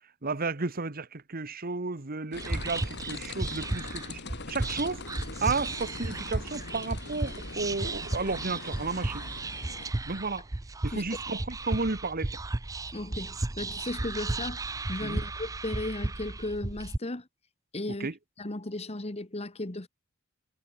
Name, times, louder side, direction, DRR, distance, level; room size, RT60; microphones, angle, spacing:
voice 1, 0.2-4.2 4.5-5.0 5.4-9.3 10.1-10.4 10.8-12.4 15.0-15.2 18.0-18.1, right 3 dB, 45° right, 1.4 m, -33 dB
sound 1, 2.3-9.9, left 4 dB, 55° left, 1.7 m, -42 dB
Whispering, 2.3-17.0, right 2 dB, 15° right, 0.5 m, -34 dB
voice 2, 12.9-14.6 14.9-17.3 17.7-18.1 18.4-19.9, left 2 dB, 30° left, 1.4 m, -35 dB
head